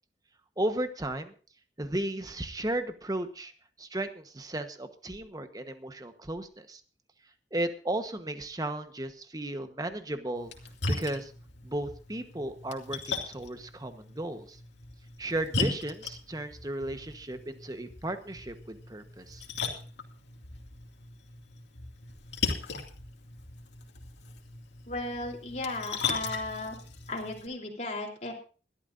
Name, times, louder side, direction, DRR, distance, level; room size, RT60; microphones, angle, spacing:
voice 1, 0.6-1.3 1.8-3.5 3.8-6.8 7.5-10.5 10.9-11.3 11.6-14.6 15.2-19.4, right 1 dB, 20° right, 8 dB, 1.1 m, -35 dB
Splash splatter, 10.3-27.5, left 4 dB, 85° left, 2.4 m, -38 dB
voice 2, 24.9-26.8 27.1-28.3, left 2 dB, 40° left, 0 dB, 3.4 m, -35 dB
22.0 x 12.5 x 2.6 m, 0.37 s
head